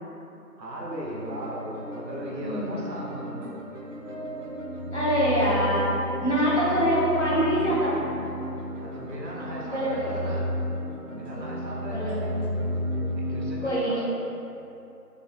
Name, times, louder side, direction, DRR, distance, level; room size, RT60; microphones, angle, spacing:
voice 1, 0.6-3.5 8.8-10.5 11.1-12.3 13.1-14.0, equal, 85° right, -3 dB, 0.8 m, -37 dB
sound 1, 0.9-13.5, equal, 50° right, 0.6 m, -33 dB
voice 2, 2.4-2.9 4.9-7.9 9.6-10.3 11.8-12.7 13.6-14.0, equal, 45° left, -8 dB, 0.6 m, -25 dB
3.5 x 2.0 x 2.6 m, 2.8 s
figure-of-eight pair, 165°, 49 cm